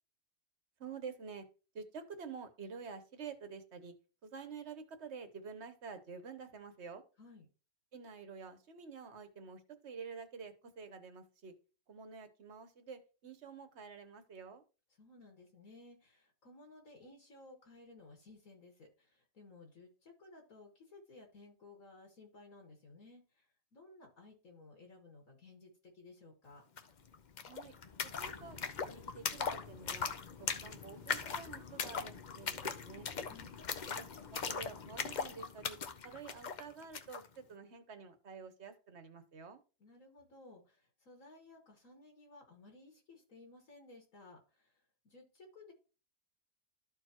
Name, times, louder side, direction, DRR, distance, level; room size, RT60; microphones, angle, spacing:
voice 1, 0.8-1.4 1.7-3.9 4.2-7.0 7.9-11.5 11.9-14.6 27.4-27.8 28.2-30.1 30.4-33.1 33.9-35.8 36.0-39.6, right 5 dB, 55° right, 9 dB, 1.2 m, -49 dB
voice 2, 15.0-26.7 33.3-33.5 39.8-44.8 45.0-45.7, left 2 dB, 70° left, 1 dB, 2.2 m, -57 dB
sound 1, 26.8-26.9 27.1-37.3, left 6 dB, 50° left, 0.6 m, -40 dB
13.5 x 4.5 x 2.9 m, 0.34 s
omnidirectional pair, 1.5 m